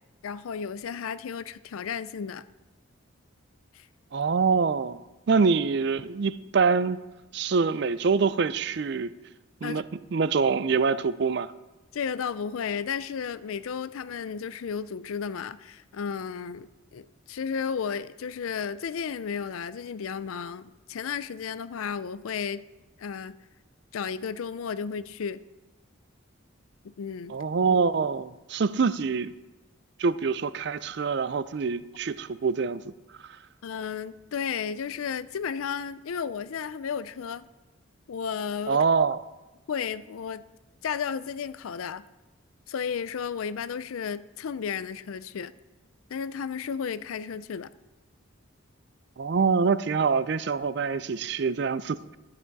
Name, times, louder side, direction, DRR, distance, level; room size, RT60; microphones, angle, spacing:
voice 1, 0.2-2.4 3.7-3.9 9.6-9.8 11.9-22.6 23.0-23.4 23.9-25.4 26.8-27.3 33.6-37.4 38.1-38.8 39.7-40.4 40.8-42.1 42.7-45.5 46.1-47.7, left 6 dB, 85° left, 0.4 m, -33 dB
voice 2, 4.1-7.0 7.3-9.2 9.6-9.8 10.1-11.5 27.3-29.3 30.0-32.9 38.7-39.2 49.2-52.0, right 5 dB, 55° right, 0.4 m, -25 dB
12.5 x 9.9 x 4.1 m
head